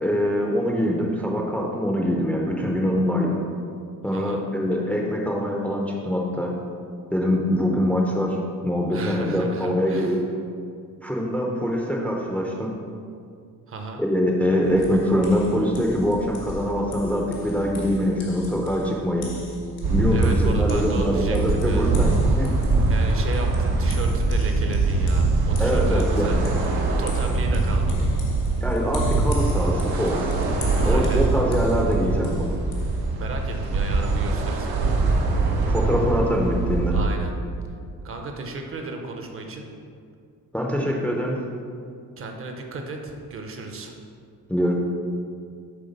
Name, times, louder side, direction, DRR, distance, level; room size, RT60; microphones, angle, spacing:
voice 1, 0.0-3.4 4.0-6.5 7.1-8.4 8.6-10.2 11.0-12.7 14.0-19.3 19.9-22.1 22.4-22.5 25.6-26.5 28.6-30.3 30.8-32.5 35.7-36.9 40.5-41.4 44.5-44.7, equal, 5° left, -1 dB, 0.5 m, -24 dB
voice 2, 4.1-4.4 8.9-10.2 13.7-14.0 20.1-22.0 22.9-26.4 26.7-28.1 30.8-31.2 33.2-35.0 36.9-37.3 38.0-39.7 42.2-44.0, right 2 dB, 35° right, 3 dB, 0.7 m, -34 dB
sound 1, 14.6-33.1, left 1 dB, 90° left, 1.6 m, -39 dB
sound 2, 19.8-37.0, right 3 dB, 85° right, 1.0 m, -23 dB
7.8 x 3.7 x 5.2 m, 2.3 s
cardioid pair, 170°, 36 cm